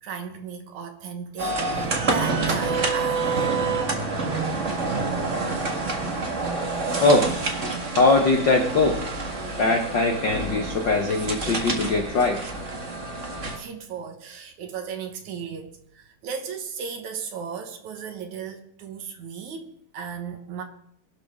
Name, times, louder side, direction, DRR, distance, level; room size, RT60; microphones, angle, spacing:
voice 1, 0.0-3.7 13.5-20.6, right 6 dB, 60° right, 2.3 m, -36 dB
sound 1, 1.4-13.6, right 3 dB, 40° right, 1.0 m, -27 dB
voice 2, 7.0-7.3 7.9-9.0 9.6-12.5, left 2 dB, 80° left, 1.0 m, -21 dB
23.0 x 12.0 x 3.7 m
omnidirectional pair, 4.2 m